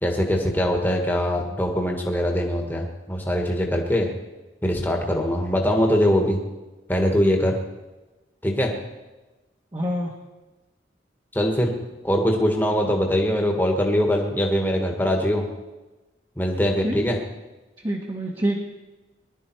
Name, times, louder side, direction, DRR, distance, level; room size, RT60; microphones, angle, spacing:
voice 1, 0.0-4.1 4.6-6.4 6.9-7.6 8.4-8.7 11.3-11.7 12.0-15.4 16.4-17.2, equal, 10° left, 1 dB, 1.6 m, -22 dB
voice 2, 9.7-10.1 16.8-17.0 17.8-18.6, right 1 dB, 25° right, -1 dB, 1.5 m, -26 dB
20.5 x 12.0 x 4.7 m, 1.1 s
head